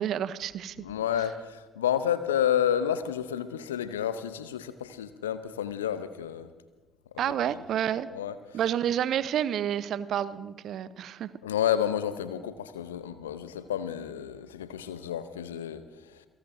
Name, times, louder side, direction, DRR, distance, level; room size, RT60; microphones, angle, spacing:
voice 1, 0.0-0.8 7.2-8.1 8.5-11.3, right 10 dB, 60° right, 17 dB, 0.7 m, -29 dB
voice 2, 0.8-6.5 7.1-7.6 8.1-8.6 11.4-16.3, left 9 dB, 80° left, 13 dB, 0.7 m, -30 dB
28.5 x 17.5 x 2.7 m, 1.3 s
figure-of-eight pair, 45°, 0 cm